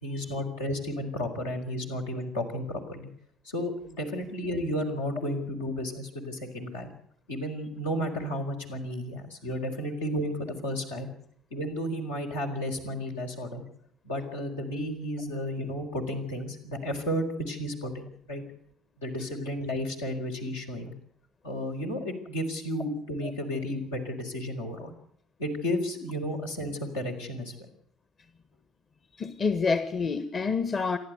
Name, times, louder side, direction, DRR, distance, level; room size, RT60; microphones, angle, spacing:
voice 1, 0.0-3.1 3.4-6.9 7.3-11.1 11.5-13.6 14.0-18.4 19.0-20.9 21.4-24.9 25.4-27.5, equal, 75° left, 4.5 m, -33 dB
voice 2, 29.2-31.0, left 4 dB, 35° left, 1.5 m, -28 dB
28.0 x 11.5 x 8.1 m
figure-of-eight pair, 55°, 0 cm